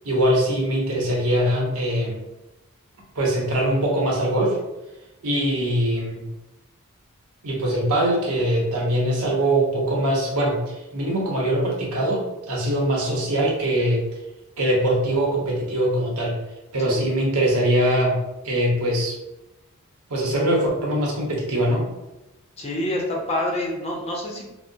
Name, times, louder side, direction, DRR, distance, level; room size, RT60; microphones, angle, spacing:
voice 1, 0.0-2.2 3.1-4.6 5.2-6.2 7.4-14.0 14.6-16.3 16.7-18.1 18.4-19.2 20.1-21.9, right 1 dB, 80° right, -2 dB, 1.0 m, -22 dB
voice 2, 22.6-24.5, left 1 dB, 30° left, -1 dB, 0.6 m, -27 dB
4.1 x 2.0 x 2.6 m, 0.96 s
head